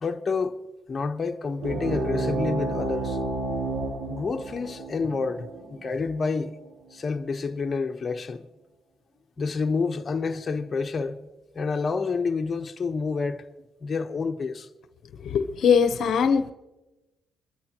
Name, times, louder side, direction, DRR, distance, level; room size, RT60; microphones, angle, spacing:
voice 1, 0.0-0.6 0.9-3.2 4.1-6.5 6.9-8.5 9.4-11.2 11.5-13.4 13.8-14.7, left 4 dB, 35° left, 1.1 m, -28 dB
sound 1, 1.6-6.7, right 2 dB, 90° right, 3.1 m, -31 dB
voice 2, 15.2-16.5, left 6 dB, 65° left, 0.9 m, -21 dB
24.5 x 13.0 x 3.0 m
cardioid pair, 90°, 0 cm